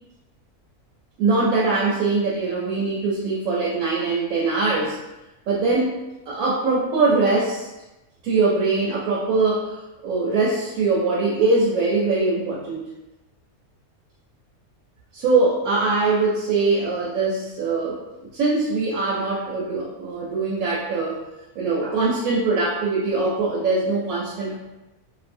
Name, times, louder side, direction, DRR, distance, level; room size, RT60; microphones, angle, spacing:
voice 1, 1.2-5.0 5.5-5.9 6.3-7.7 8.2-9.8 10.0-12.8 15.1-21.2 21.6-24.6, right 3 dB, 75° right, -4 dB, 1.0 m, -22 dB
2.6 x 2.1 x 2.5 m, 1.0 s
omnidirectional pair, 1.6 m